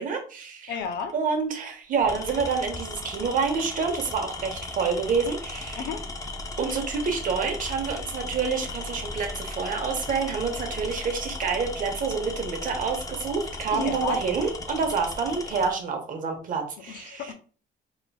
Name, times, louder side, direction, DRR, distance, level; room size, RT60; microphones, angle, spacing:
voice 1, 0.0-0.8 1.1-5.9 6.6-17.3, right 5 dB, 50° right, 4 dB, 1.0 m, -28 dB
voice 2, 0.7-1.1 5.7-6.0 13.7-14.2 16.9-17.3, left 6 dB, 80° left, 7 dB, 0.6 m, -32 dB
Tools, 0.8-1.1 1.9-15.8, left 3 dB, 20° left, 0.5 m, -36 dB
3.8 x 3.0 x 2.3 m, 0.40 s
cardioid pair, 110°, 17 cm